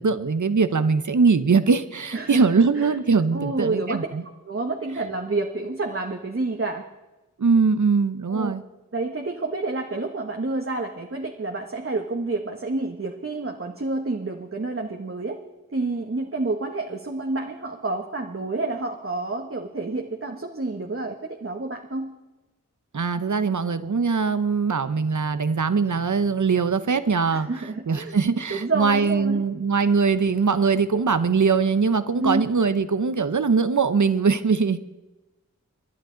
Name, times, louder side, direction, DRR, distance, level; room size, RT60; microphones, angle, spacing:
voice 1, 0.0-4.2 7.4-8.6 22.9-27.5 27.9-34.8, right 5 dB, 60° right, 12 dB, 1.0 m, -21 dB
voice 2, 2.1-3.0 3.3-4.1 4.4-6.8 8.3-8.5 8.9-15.4 15.7-22.1 27.3-28.1 28.5-29.4 32.1-32.4, right 3 dB, 40° right, 2 dB, 1.4 m, -29 dB
27.0 x 11.0 x 4.0 m, 1.1 s
cardioid pair, 45°, 33 cm